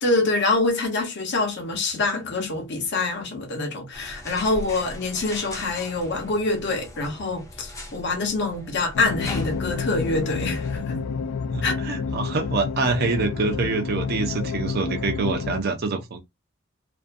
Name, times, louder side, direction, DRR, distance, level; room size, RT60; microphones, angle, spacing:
voice 1, 0.0-11.0 11.6-11.8, left 3 dB, 55° left, 0.8 m, -25 dB
sound 1, 3.9-10.8, left 1 dB, 15° left, 0.5 m, -39 dB
sound 2, 8.9-15.6, left 5 dB, 85° left, 0.3 m, -29 dB
voice 2, 11.5-16.2, right 3 dB, 50° right, 0.4 m, -26 dB
2.5 x 2.1 x 2.5 m
head